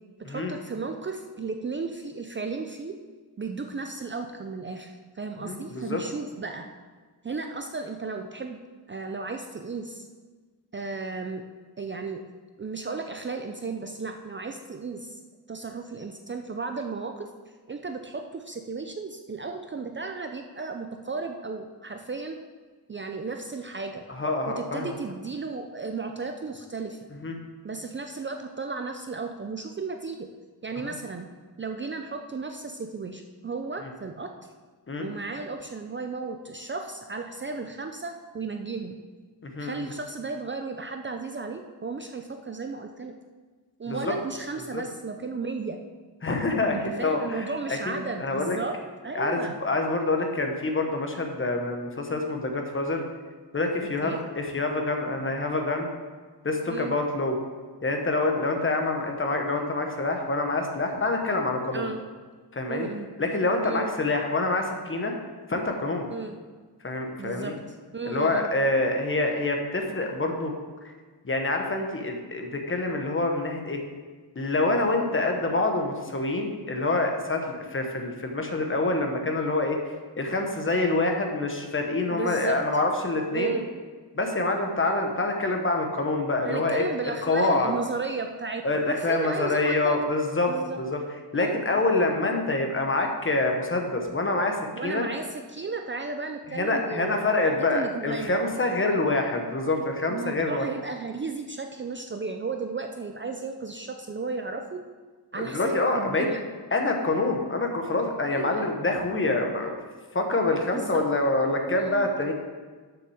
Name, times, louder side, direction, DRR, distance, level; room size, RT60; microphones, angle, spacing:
voice 1, 0.3-2.9 3.4-6.7 7.2-8.6 8.9-10.1 10.7-11.4 11.8-12.2 12.6-15.2 15.5-17.3 17.7-22.4 22.9-24.0 24.6-27.0 27.6-30.3 30.6-31.3 31.6-34.3 35.0-39.0 39.6-43.1 43.8-45.8 46.7-48.8 49.0-49.6 54.0-54.2 56.7-56.9 61.7-62.0 62.7-63.1 63.6-63.9 66.1-66.4 67.2-67.6 67.9-68.5 82.1-82.6 83.3-83.6 86.4-90.0 90.5-90.8 91.3-91.6 94.7-98.5 100.1-104.8 105.3-106.4 108.3-108.7 110.7-111.0 111.7-112.1, right 4 dB, 30° right, 5 dB, 0.5 m, -34 dB
voice 2, 5.4-6.0 24.1-24.9 27.1-27.3 30.8-30.9 34.9-35.1 39.4-39.9 43.9-44.1 44.7-44.8 46.2-48.6 49.1-53.0 53.5-55.9 56.4-57.3 57.8-61.9 62.5-62.9 63.2-65.1 65.5-66.1 66.8-67.5 68.1-70.5 71.2-73.8 74.3-79.8 80.2-83.6 84.1-86.8 87.3-87.7 88.6-90.5 90.8-91.0 91.3-95.0 96.5-100.6 105.4-106.3 106.7-109.8 110.1-112.3, left 2 dB, 30° left, 3 dB, 1.2 m, -26 dB
7.1 x 6.6 x 6.4 m, 1.4 s
wide cardioid pair, 140°, 39 cm